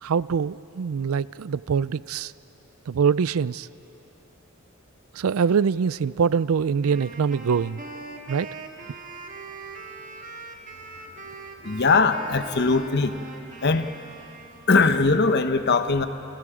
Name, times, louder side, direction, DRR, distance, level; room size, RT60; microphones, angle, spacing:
voice 1, 0.0-2.3 2.9-3.7 5.1-7.8 8.3-8.5, right 6 dB, 90° right, 19 dB, 0.4 m, -24 dB
Wind instrument woodwind instrument, 6.8-15.0, right 3 dB, 40° right, 1.7 m, -41 dB
voice 2, 11.6-13.1 13.6-13.9 14.7-16.1, left 4 dB, 55° left, 9 dB, 0.9 m, -20 dB
28.5 x 28.0 x 5.0 m, 2.9 s
head